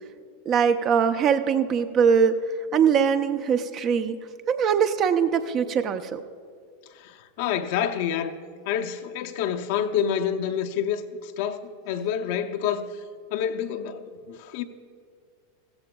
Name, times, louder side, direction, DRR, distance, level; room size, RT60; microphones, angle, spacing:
voice 1, 0.5-2.4 2.7-4.2 4.5-6.2, right 7 dB, 40° right, 0.6 m, -22 dB
voice 2, 7.0-8.3 8.7-12.9 13.3-14.6, left 8 dB, 60° left, 0.7 m, -28 dB
15.0 x 15.0 x 2.3 m
hypercardioid pair, 95°, 0 cm